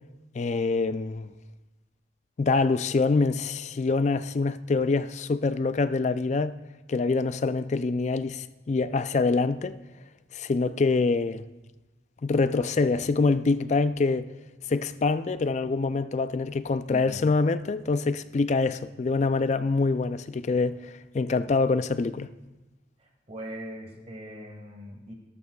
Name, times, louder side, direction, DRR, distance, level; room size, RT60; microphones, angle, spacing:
voice 1, 0.3-1.3 2.4-6.5 6.9-9.8 10.3-11.4 12.2-14.3 14.7-20.8 21.1-22.3, left 3 dB, 35° left, 0.3 m, -25 dB
voice 2, 16.9-17.2 23.0-25.1, equal, 30° right, 1.7 m, -41 dB
18.0 x 12.5 x 2.3 m
head